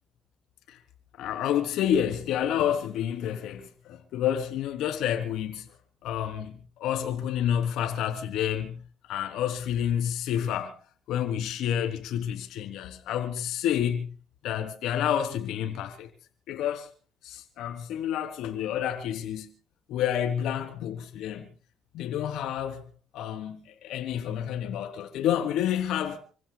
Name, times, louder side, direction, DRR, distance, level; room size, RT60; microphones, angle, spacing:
voice 1, 1.1-5.7 6.0-8.8 9.1-10.8 11.1-14.1 14.4-16.1 16.5-16.9 17.2-19.5 19.9-21.5 21.9-22.9 23.1-26.2, left 10 dB, 85° left, 3.5 m, -29 dB
29.5 x 16.0 x 2.4 m
cardioid pair, 105°, 0 cm